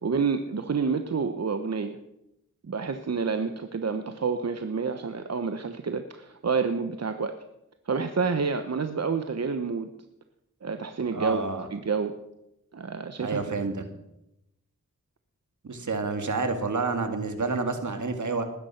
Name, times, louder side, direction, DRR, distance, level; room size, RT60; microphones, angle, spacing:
voice 1, 0.0-2.0 2.6-7.4 7.9-9.9 10.6-11.4 11.7-12.1 12.7-13.5, right 5 dB, 55° right, 8 dB, 1.0 m, -28 dB
voice 2, 11.1-11.7 13.2-13.8 15.6-18.4, right 4 dB, 75° right, 6 dB, 2.2 m, -29 dB
20.0 x 9.7 x 5.8 m, 0.86 s
wide cardioid pair, 60°, 30 cm